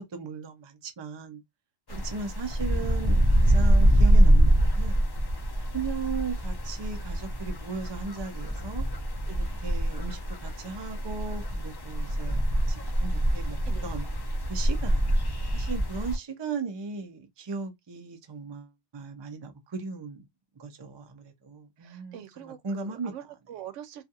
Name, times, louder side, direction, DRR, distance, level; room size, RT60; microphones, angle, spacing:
voice 1, 0.0-1.4 2.0-5.0 5.7-8.8 9.6-12.4 12.7-14.1 14.5-15.1 15.5-20.2 20.6-23.1, right 4 dB, 40° right, 0.3 m, -37 dB
sound 1, 1.9-16.2, right 1 dB, 40° left, 0.3 m, -24 dB
voice 2, 21.8-24.1, right 11 dB, 90° right, 0.9 m, -44 dB
2.4 x 2.4 x 2.7 m
omnidirectional pair, 1.2 m